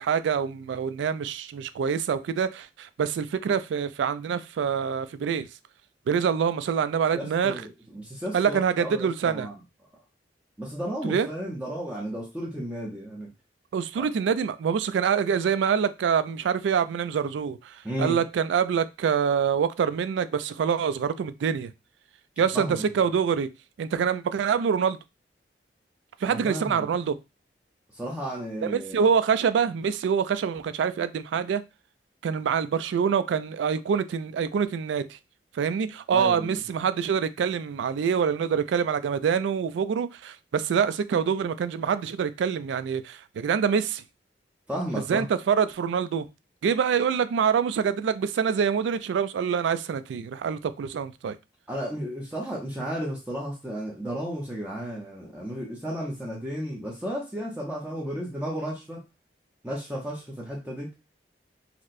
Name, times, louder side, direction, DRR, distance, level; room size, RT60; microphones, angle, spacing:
voice 1, 0.0-5.5 6.1-7.6 8.3-9.5 11.0-11.3 13.7-21.7 22.4-23.5 23.8-25.0 26.2-27.2 28.6-31.6 32.2-35.2 35.5-44.0 45.1-46.3 46.6-51.4, right 7 dB, 80° right, 0.3 m, -25 dB
voice 2, 7.1-9.5 10.6-13.3 14.0-14.1 17.8-18.2 22.5-22.8 26.2-26.9 27.9-29.1 36.1-36.6 44.7-45.3 51.7-59.0 59.6-60.9, equal, 10° right, 0.6 m, -33 dB
4.2 x 2.0 x 2.5 m
head